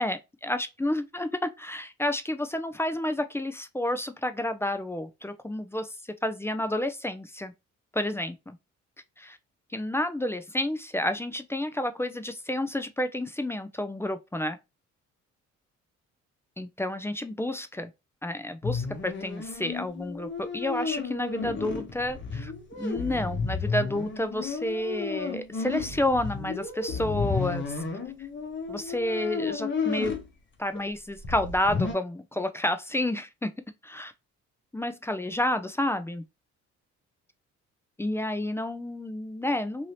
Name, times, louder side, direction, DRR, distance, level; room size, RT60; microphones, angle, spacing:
voice 1, 0.0-5.9 6.2-7.5 7.9-8.6 9.2-9.4 9.7-14.6 16.6-17.9 18.2-22.5 22.8-27.8 28.7-30.1 30.6-33.5 33.8-34.1 34.7-36.2 38.0-39.9, left 1 dB, 10° left, 0.3 m, -30 dB
sound 1, 18.6-30.2 30.7-30.8 31.2-31.9, left 5 dB, 40° left, 0.9 m, -32 dB
2.7 x 2.7 x 3.0 m
cardioid pair, 90°, 30 cm